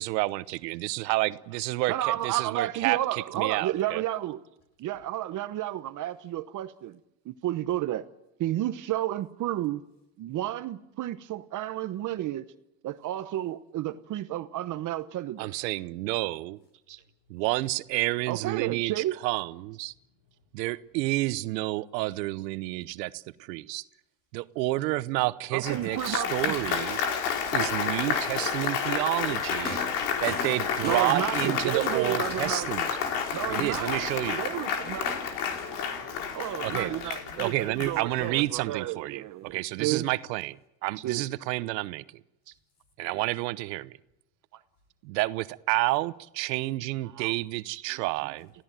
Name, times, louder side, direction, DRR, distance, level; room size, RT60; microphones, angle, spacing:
voice 1, 0.0-4.0 15.4-16.6 17.3-19.9 20.5-23.8 24.3-27.0 27.5-29.8 30.2-32.9 33.5-34.4 36.6-36.9 37.4-40.6 40.8-42.0 43.0-44.0 45.0-48.5, right 19 dB, 85° right, 1.1 m, -30 dB
voice 2, 1.9-4.4 4.8-7.0 7.2-8.0 8.4-9.8 10.2-12.5 12.8-15.5 16.9-17.0 18.2-19.2 25.5-26.5 29.7-29.8 30.3-32.7 33.3-35.1 36.3-40.1 41.0-41.3 47.2-47.4 47.7-48.4, right 13 dB, 40° right, 1.0 m, -32 dB
Applause, 25.6-38.4, left 7 dB, 75° left, 4.3 m, -30 dB
sound 1, 29.6-37.2 38.1-38.3, left 2 dB, 20° left, 3.0 m, -44 dB
voice 3, 31.5-32.0 34.1-36.8 37.1-37.7 38.0-38.7, left 4 dB, 40° left, 7.4 m, -48 dB
28.5 x 16.0 x 9.0 m
supercardioid pair, 135°, 49 cm